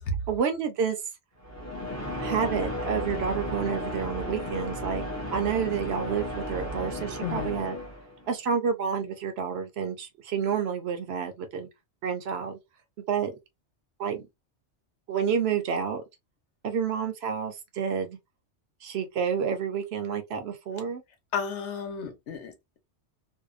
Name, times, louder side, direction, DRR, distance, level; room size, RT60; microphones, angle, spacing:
voice 1, 0.3-1.0 2.2-7.8 8.3-11.7 12.0-12.6 13.1-13.3 14.0-14.3 15.1-16.0 16.6-18.2 18.8-21.0, right 7 dB, 65° right, 0.8 m, -29 dB
sound 1, 1.4-8.3, left 1 dB, 20° left, 0.5 m, -34 dB
voice 2, 7.2-7.5 21.3-22.8, left 6 dB, 75° left, 1.0 m, -33 dB
2.7 x 2.1 x 2.4 m
omnidirectional pair, 1.2 m